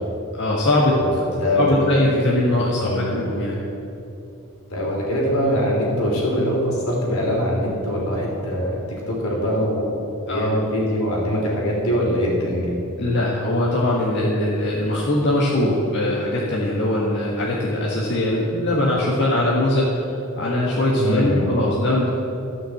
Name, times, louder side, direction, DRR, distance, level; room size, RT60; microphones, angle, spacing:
voice 1, 0.3-1.0 1.6-3.6 10.3-10.5 13.0-22.1, left 1 dB, 55° left, -6 dB, 1.7 m, -21 dB
voice 2, 1.4-1.8 2.8-3.1 4.7-8.8 9.1-9.9 10.3-12.7 21.0-21.5, equal, 80° left, -3 dB, 3.5 m, -22 dB
14.0 x 6.2 x 7.8 m, 2.8 s
head